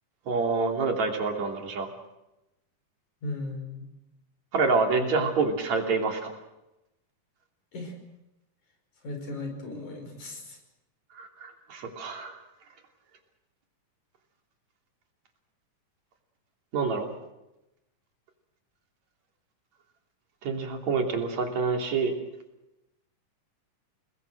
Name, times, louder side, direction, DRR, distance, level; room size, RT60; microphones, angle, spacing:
voice 1, 0.3-1.9 4.5-6.3 11.2-12.4 16.7-17.1 20.4-22.1, right 4 dB, 60° right, 3 dB, 4.2 m, -27 dB
voice 2, 3.2-3.9 7.7-8.0 9.0-10.6, left 2 dB, 65° left, 4 dB, 6.8 m, -36 dB
29.0 x 20.5 x 6.5 m, 0.93 s
omnidirectional pair, 3.7 m